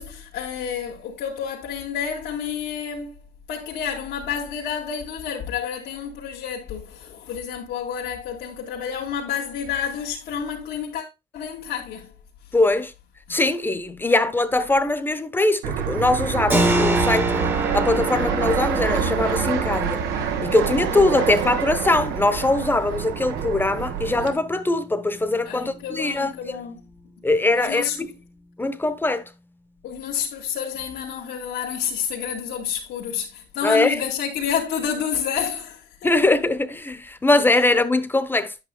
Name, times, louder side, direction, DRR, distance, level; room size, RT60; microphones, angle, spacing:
voice 1, 0.0-3.2 3.5-11.1 11.3-12.1 13.3-13.4 14.1-14.2 20.9-21.6 25.4-26.8 27.5-28.0 29.8-36.2, left 8 dB, 85° left, 2.0 m, -29 dB
voice 2, 12.5-12.9 13.3-20.0 20.4-26.6 27.2-28.1 28.6-29.3 33.6-34.0 36.0-38.6, left 2 dB, 10° left, 1.0 m, -22 dB
Fixed-wing aircraft airplane, 15.6-24.3, right 8 dB, 85° right, 1.3 m, -26 dB
Keyboard (musical), 16.5-26.9, right 1 dB, 15° right, 1.0 m, -29 dB
10.0 x 8.5 x 2.2 m
cardioid pair, 110°, 17 cm